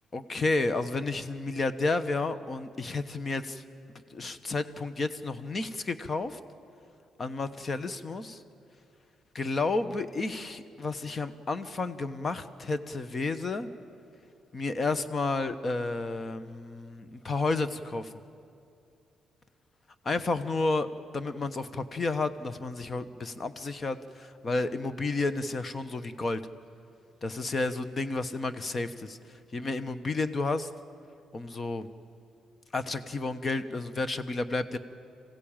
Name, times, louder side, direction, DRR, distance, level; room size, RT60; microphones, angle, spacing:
voice 1, 0.1-3.6 4.1-6.4 7.2-8.4 9.3-13.7 14.5-18.1 20.0-20.9 21.1-26.4 27.2-29.2 29.5-30.7 31.3-31.9 32.7-34.8, left 3 dB, 35° left, 12 dB, 1.1 m, -31 dB
26.0 x 16.0 x 9.0 m, 2.6 s
cardioid pair, 90°, 0 cm